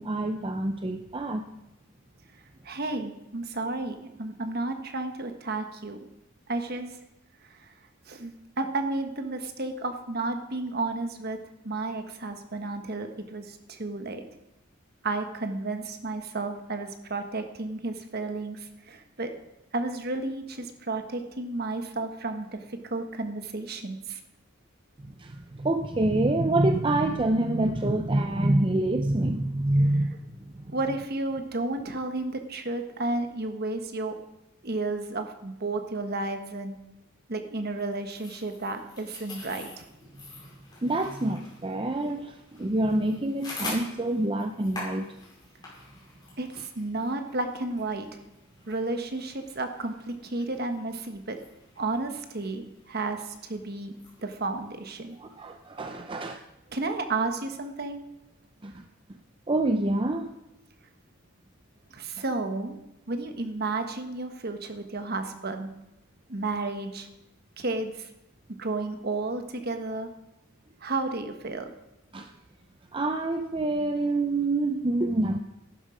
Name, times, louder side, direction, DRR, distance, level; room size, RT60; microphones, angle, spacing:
voice 1, 0.0-1.4 25.0-30.2 30.6-30.7 40.8-45.1 55.2-56.4 58.6-58.8 59.5-60.3 72.1-72.3 72.9-75.4, right 2 dB, 25° right, 5 dB, 0.5 m, -26 dB
voice 2, 2.6-6.1 6.5-7.0 7.6-7.7 8.1-11.4 11.6-14.2 15.0-19.3 19.7-24.2 30.7-34.2 34.6-36.8 37.3-39.9 46.4-48.2 48.7-51.4 51.8-55.2 56.7-58.0 61.9-62.8 63.1-65.7 66.3-67.1 67.6-68.1 68.5-70.1 70.8-71.7, right 2 dB, 45° right, 6 dB, 1.3 m, -32 dB
sound 1, 37.6-55.9, left 2 dB, 20° left, 6.0 m, -46 dB
15.0 x 11.5 x 5.0 m, 0.91 s
head